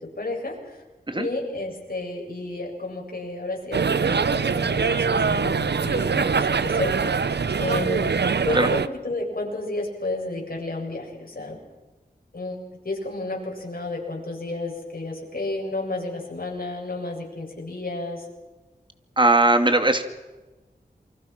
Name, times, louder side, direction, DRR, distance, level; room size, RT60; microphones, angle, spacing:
voice 1, 0.2-0.8 1.1-7.0 7.6-8.1 8.4-11.6 12.3-12.6 12.8-18.3, left 2 dB, 60° left, -1 dB, 7.7 m, -31 dB
sound 1, 3.7-8.9, right 5 dB, 85° right, 0.8 m, -23 dB
voice 2, 19.2-20.0, right 2 dB, 30° right, 8 dB, 2.6 m, -19 dB
28.5 x 24.5 x 6.1 m, 1.2 s
wide cardioid pair, 80°, 17 cm